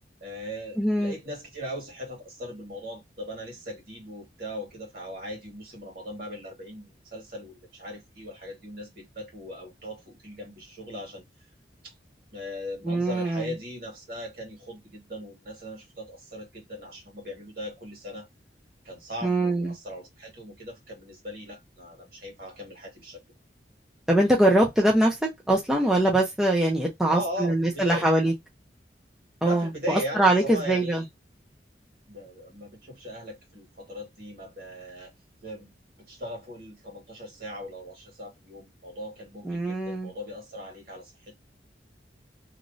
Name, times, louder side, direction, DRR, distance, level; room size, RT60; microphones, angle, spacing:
voice 1, 0.2-11.5 11.8-11.9 12.3-18.3 18.8-23.2 27.1-28.1 29.4-31.1 32.1-35.1 35.4-35.7 36.1-41.4, equal, 55° right, 1.8 m, -39 dB
voice 2, 0.8-1.2 12.9-13.5 19.2-19.7 24.1-25.2 25.5-28.3 29.4-31.0 39.4-40.1, right 1 dB, 5° right, 0.6 m, -23 dB
3.1 x 2.4 x 2.5 m
head